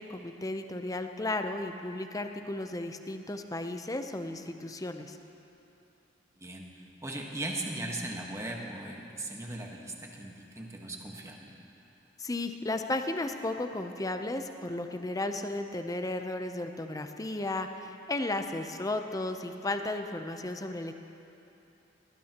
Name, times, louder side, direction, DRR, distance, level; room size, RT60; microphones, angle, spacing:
voice 1, 0.0-5.2 12.2-21.0, left 2 dB, 20° left, 6 dB, 0.7 m, -34 dB
voice 2, 7.0-11.5, right 1 dB, 15° right, 0 dB, 1.4 m, -38 dB
21.0 x 18.5 x 3.0 m, 3.0 s
head